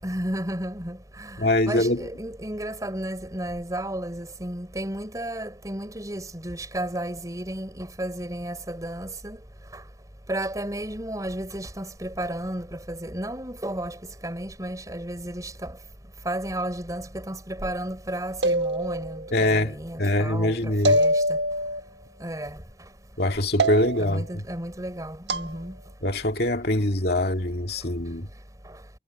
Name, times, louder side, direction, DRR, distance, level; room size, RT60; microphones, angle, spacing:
voice 1, 0.0-9.4 9.7-9.8 10.3-15.8 16.3-21.4 22.2-22.6 24.0-25.8 28.7-28.8, right 1 dB, 20° right, 5.2 m, -33 dB
voice 2, 1.4-2.0 19.3-21.0 23.2-24.3 26.0-28.3, left 1 dB, 60° left, 2.3 m, -24 dB
sound 1, 18.4-19.2 20.8-21.8 23.6-24.2 25.3-25.5, right 1 dB, 80° right, 1.4 m, -23 dB
head